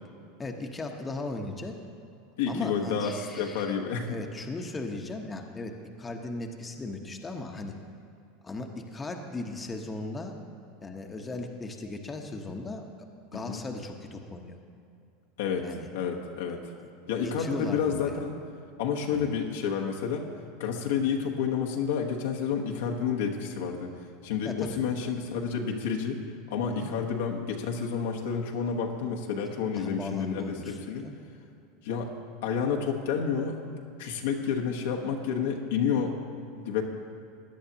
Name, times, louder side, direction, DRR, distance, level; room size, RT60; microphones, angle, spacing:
voice 1, 0.4-1.7 2.5-3.7 4.1-5.7 6.0-7.7 8.4-10.3 10.8-12.9 13.3-14.6 15.6-15.9 17.2-18.2 19.1-19.3 24.4-24.8 26.7-26.9 29.7-31.2, left 2 dB, 20° left, 3 dB, 1.0 m, -37 dB
voice 2, 2.4-4.2 13.4-13.6 15.4-15.7 15.9-16.6 17.1-18.3 18.8-20.3 20.6-23.9 24.2-26.2 26.5-31.1 31.8-32.1 32.4-33.6 34.0-36.2 36.6-36.8, left 6 dB, 75° left, 0 dB, 1.2 m, -30 dB
16.5 x 10.5 x 2.9 m, 2.5 s
hypercardioid pair, 95°, 0 cm